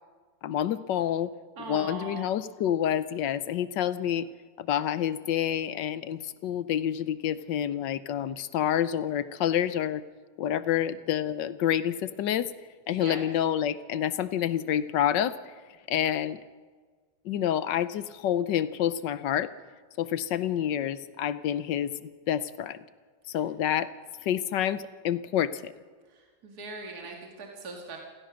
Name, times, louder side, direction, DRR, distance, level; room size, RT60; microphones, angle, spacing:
voice 1, 0.4-1.3 1.7-4.3 4.6-10.0 10.4-12.5 12.9-15.3 15.9-16.4 17.2-19.5 20.0-22.8 23.3-23.9 24.2-25.7, left 10 dB, 70° left, 14 dB, 1.4 m, -28 dB
voice 2, 1.6-2.4 12.9-13.2 26.1-28.0, right 3 dB, 50° right, 0 dB, 2.6 m, -40 dB
27.5 x 16.5 x 6.3 m, 1.5 s
omnidirectional pair, 2.1 m